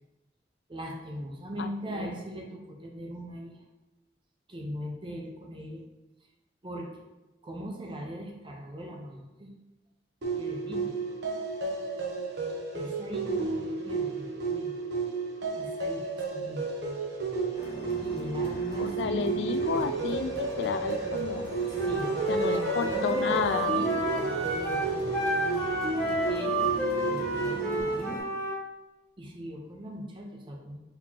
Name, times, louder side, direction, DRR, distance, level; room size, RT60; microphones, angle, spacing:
voice 1, 0.7-3.6 4.5-5.8 6.6-6.9 7.4-9.5 10.4-10.9 12.7-14.8 15.5-16.6 18.0-19.4 21.7-23.4 23.7-24.0 24.8-25.0 26.3-26.6 27.0-28.2 29.2-30.8, equal, 30° right, 1 dB, 0.7 m, -39 dB
voice 2, 1.6-2.1 18.8-21.5 22.3-23.8, left 5 dB, 75° left, 10 dB, 0.3 m, -32 dB
sound 1, 10.2-27.8, right 4 dB, 70° right, 1.0 m, -32 dB
sound 2, 17.5-28.2, left 1 dB, 35° left, 1.1 m, -43 dB
Wind instrument woodwind instrument, 21.8-28.6, right 1 dB, 5° left, 1.3 m, -30 dB
4.4 x 4.2 x 2.8 m, 1.0 s
head